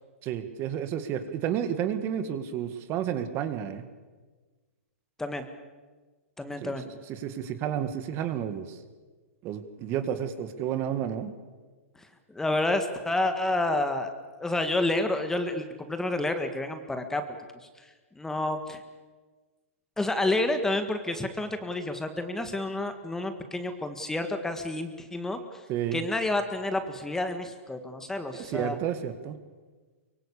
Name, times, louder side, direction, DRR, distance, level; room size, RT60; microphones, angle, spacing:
voice 1, 0.2-3.9 6.6-8.8 9.4-11.3 25.7-26.0 28.3-29.4, right 9 dB, 30° right, 10 dB, 2.0 m, -31 dB
voice 2, 6.4-6.8 12.0-14.1 14.4-17.2 17.8-17.9 18.1-18.8 20.0-25.6 25.9-28.8, left 2 dB, 5° left, 8 dB, 1.8 m, -29 dB
24.0 x 23.5 x 8.6 m, 1.4 s
hypercardioid pair, 140°, 8 cm